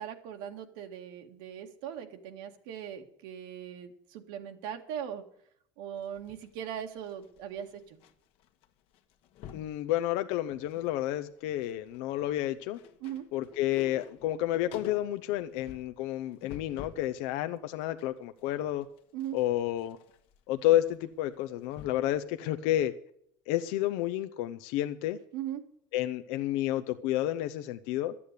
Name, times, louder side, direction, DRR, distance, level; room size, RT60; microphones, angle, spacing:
voice 1, 0.0-5.2 5.8-8.0 13.0-13.3 19.1-19.4 25.3-25.6, right 9 dB, 85° right, 4 dB, 2.0 m, -39 dB
sound 1, 6.0-8.1 8.4-8.7 8.9-9.8 10.3-11.0 11.2-17.1 17.5-22.2 22.5-22.6, left 9 dB, 65° left, 1.3 m, -50 dB
voice 2, 9.5-12.8 13.3-18.9 19.3-20.0 20.5-22.9 23.5-25.2 25.9-28.1, left 13 dB, 80° left, 10 dB, 0.7 m, -30 dB
13.0 x 8.5 x 8.3 m, 0.68 s
cardioid pair, 150°, 10 cm